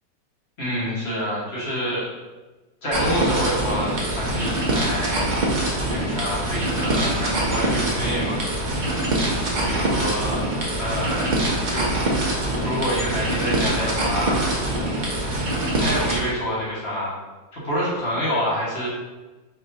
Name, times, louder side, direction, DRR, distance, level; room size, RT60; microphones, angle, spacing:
voice 1, 0.6-2.1 2.8-5.3 5.9-8.4 9.5-10.4 10.8-11.4 11.7-11.9 12.6-14.5 15.7-17.1 17.5-18.9, equal, 40° left, -7 dB, 1.4 m, -27 dB
sound 1, 2.9-16.2, right 1 dB, 80° right, 0.4 m, -24 dB
4.3 x 2.9 x 2.6 m, 1.2 s
omnidirectional pair, 1.9 m